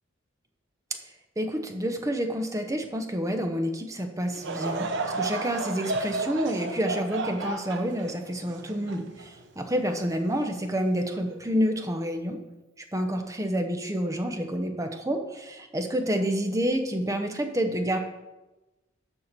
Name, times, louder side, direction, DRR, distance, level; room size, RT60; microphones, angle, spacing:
voice 1, 1.4-4.9 5.2-12.4 12.9-18.0, equal, 15° right, 5 dB, 0.8 m, -28 dB
Laughter / Crowd, 4.3-9.8 10.4-10.5 11.3-11.5, right 3 dB, 60° right, 0.8 m, -33 dB
7.1 x 5.6 x 6.7 m, 1.1 s
head